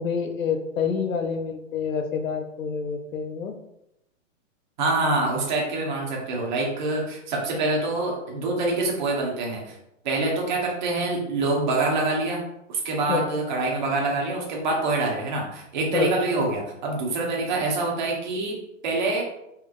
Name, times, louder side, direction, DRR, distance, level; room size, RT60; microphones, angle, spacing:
voice 1, 0.0-3.5 13.1-13.3 15.9-16.1, left 6 dB, 85° left, 4 dB, 0.9 m, -27 dB
voice 2, 4.8-9.7 10.0-12.4 12.7-18.6 18.8-19.2, right 2 dB, 35° right, -2 dB, 1.1 m, -25 dB
4.5 x 3.5 x 2.5 m, 0.82 s
hypercardioid pair, 175°, 39 cm